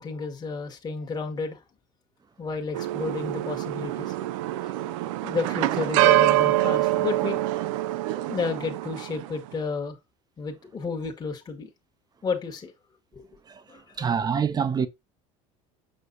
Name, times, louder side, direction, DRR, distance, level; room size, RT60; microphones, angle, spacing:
voice 1, 0.0-1.6 2.4-4.1 4.6-4.9 5.2-7.4 7.8-10.0 10.4-11.7 12.2-12.7 13.1-13.2 13.7-14.1, left 4 dB, 25° left, 1.4 m, -32 dB
sound 1, 2.7-9.3, right 15 dB, 85° right, 0.5 m, -25 dB
voice 2, 14.0-14.9, right 6 dB, 25° right, 0.7 m, -25 dB
6.6 x 5.9 x 2.6 m
supercardioid pair, 110°, 16 cm